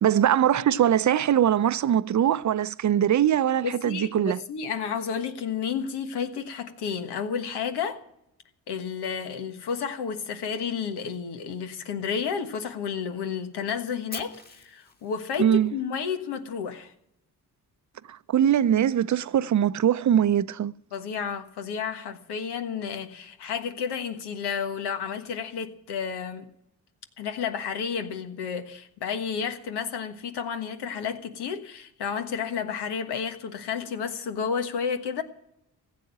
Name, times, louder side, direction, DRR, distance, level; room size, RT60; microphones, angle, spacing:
voice 1, 0.0-4.4 15.4-15.7 18.1-20.7, right 10 dB, 45° right, 0.6 m, -22 dB
voice 2, 3.6-8.0 8.7-16.9 20.9-26.5 27.2-35.2, left 6 dB, 90° left, 1.5 m, -31 dB
Fire, 14.1-16.2, left 2 dB, 25° left, 2.0 m, -44 dB
15.5 x 7.7 x 8.9 m
cardioid pair, 60°, 39 cm